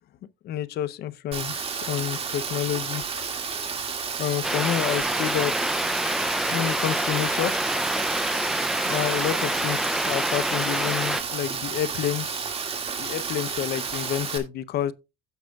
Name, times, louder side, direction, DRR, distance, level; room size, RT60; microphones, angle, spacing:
voice 1, 0.4-3.3 4.2-5.9 6.5-7.6 8.9-12.5 13.0-14.9, left 11 dB, 70° left, 0.7 m, -29 dB
Rain, 1.3-14.4, right 5 dB, 35° right, 2.1 m, -31 dB
sound 1, 4.4-11.2, right 1 dB, ahead, 0.4 m, -27 dB
16.0 x 6.3 x 2.3 m
cardioid pair, 110°, 17 cm